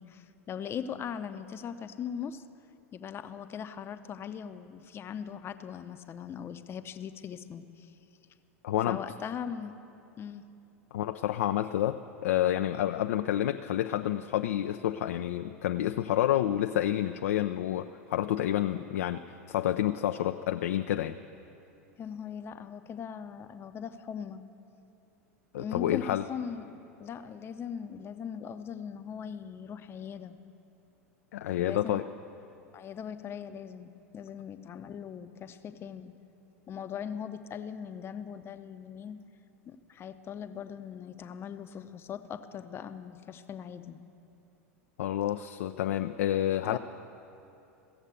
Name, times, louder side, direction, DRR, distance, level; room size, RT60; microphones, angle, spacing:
voice 1, 0.0-2.4 2.9-7.9 8.9-9.7 10.2-10.4 22.0-24.4 25.6-30.4 31.6-32.0 32.7-36.1 36.7-39.2 39.7-44.0 46.6-46.8, left 7 dB, 30° left, 10 dB, 0.6 m, -40 dB
voice 2, 8.6-9.0 10.9-21.1 25.5-26.3 31.3-32.0 45.0-46.8, left 12 dB, 70° left, 7 dB, 0.4 m, -29 dB
16.0 x 7.3 x 8.1 m, 2.8 s
hypercardioid pair, 90°, 8 cm